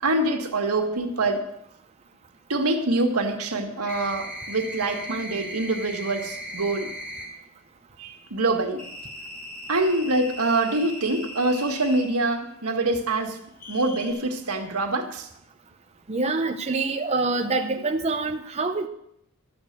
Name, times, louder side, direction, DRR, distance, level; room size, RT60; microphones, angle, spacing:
voice 1, 0.0-1.5 2.5-6.9 8.0-8.8 9.7-13.4 13.7-15.3, right 2 dB, 90° right, 3 dB, 1.8 m, -25 dB
sound 1, 3.8-7.3 8.8-12.1 13.6-14.1, equal, 45° left, 4.7 m, -38 dB
voice 2, 16.1-18.9, right 3 dB, 30° right, 4 dB, 0.7 m, -26 dB
13.5 x 6.5 x 8.1 m, 0.74 s
head